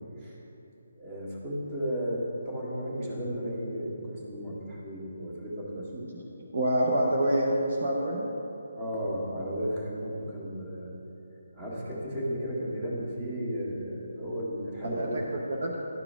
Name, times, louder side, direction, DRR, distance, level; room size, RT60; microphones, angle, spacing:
voice 1, 1.0-5.9 8.8-10.9 11.5-15.4, equal, 20° right, -6 dB, 1.8 m, -34 dB
voice 2, 6.5-7.5 7.8-8.3 14.8-15.8, right 1 dB, 55° right, -2 dB, 1.0 m, -27 dB
11.5 x 4.9 x 5.0 m, 2.9 s
figure-of-eight pair, 145°, 0 cm